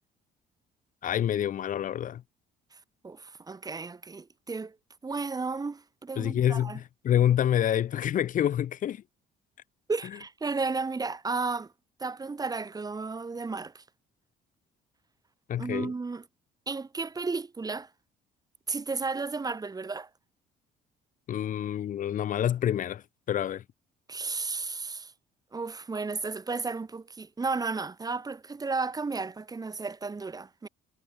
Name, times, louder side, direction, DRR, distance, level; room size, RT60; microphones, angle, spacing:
voice 1, 1.0-2.2 6.2-9.0 15.5-15.9 21.3-23.6, left 10 dB, 50° left, 1.1 m, -27 dB
voice 2, 3.0-4.7 5.0-6.8 9.9-11.7 12.0-13.8 15.6-16.2 16.7-17.9 18.7-20.1 24.1-25.1 25.5-30.7, right 4 dB, 20° right, 4.3 m, -33 dB
cardioid pair, 110°, 17 cm